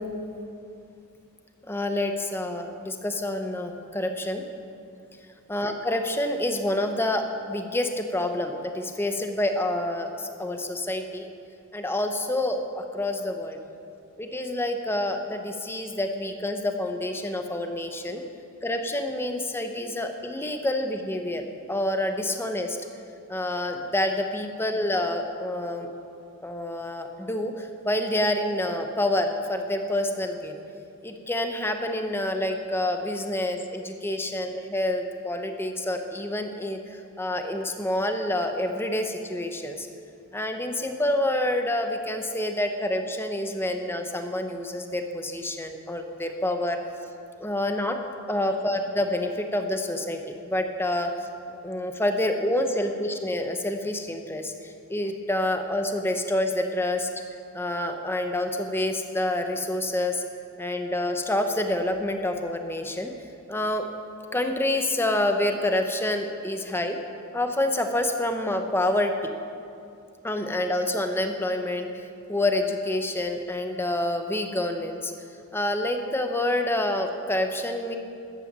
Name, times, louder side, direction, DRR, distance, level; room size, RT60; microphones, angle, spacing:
voice 1, 1.7-4.4 5.5-11.3 11.7-13.6 14.2-18.2 18.6-22.8 23.3-25.9 26.4-30.6 31.0-39.9 40.3-46.8 47.4-48.0 48.3-51.1 51.6-54.5 54.9-57.1 57.5-60.2 60.6-63.1 63.5-63.8 64.3-67.0 67.3-69.1 70.2-71.9 72.3-75.1 75.5-78.0, left 1 dB, 10° left, 5 dB, 0.9 m, -27 dB
13.0 x 9.1 x 7.4 m, 2.6 s
head